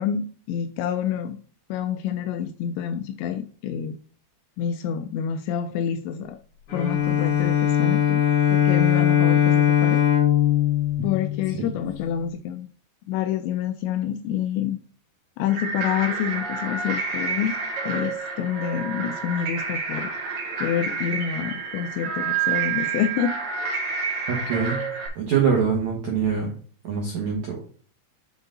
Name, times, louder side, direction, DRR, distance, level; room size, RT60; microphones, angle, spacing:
voice 1, 0.0-1.4 1.7-4.0 4.6-6.4 6.7-8.2 8.5-10.0 11.0-12.7 13.1-14.8 15.4-17.6 17.8-20.1 20.6-23.3, left 9 dB, 85° left, 8 dB, 2.6 m, -27 dB
Bowed string instrument, 6.7-11.9, left 10 dB, 55° left, 4.8 m, -20 dB
sound 1, 15.5-25.1, right 5 dB, 65° right, 1.9 m, -29 dB
voice 2, 24.3-24.8 25.2-26.5 26.8-27.6, right 6 dB, 80° right, -1 dB, 1.6 m, -24 dB
9.9 x 3.8 x 3.9 m, 0.43 s
omnidirectional pair, 5.6 m